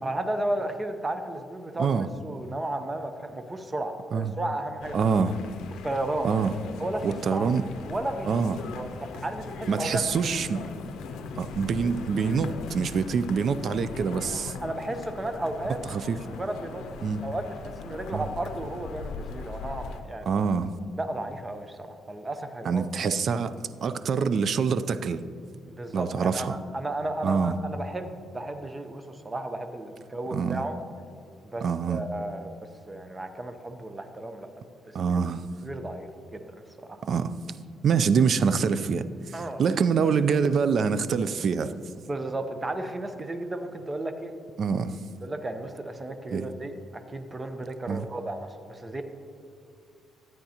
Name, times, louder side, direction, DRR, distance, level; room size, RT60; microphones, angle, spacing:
voice 1, 0.0-1.9 2.2-5.1 5.8-6.3 6.8-7.5 7.8-10.0 14.6-15.8 16.3-16.8 17.2-20.3 21.0-23.1 25.7-30.8 31.4-32.5 32.9-34.5 35.1-35.2 35.6-36.5 36.8-37.0 39.3-39.6 42.1-44.3 45.2-49.0, right 1 dB, 20° right, 8 dB, 0.8 m, -34 dB
sound 1, 4.8-20.0, left 5 dB, 85° left, 0.5 m, -40 dB
voice 2, 4.9-5.3 6.2-6.5 7.0-7.6 8.3-8.6 9.7-10.6 11.4-14.5 15.9-16.2 17.0-17.2 18.1-18.3 20.3-20.7 22.6-25.2 25.9-26.6 27.2-27.6 30.3-30.6 31.6-32.0 34.9-35.4 37.0-37.3 37.8-41.7 44.6-45.0 46.3-46.5 47.9-48.1, right 6 dB, 55° right, 13 dB, 0.4 m, -25 dB
13.0 x 8.9 x 2.9 m, 2.3 s
cardioid pair, 90°, 0 cm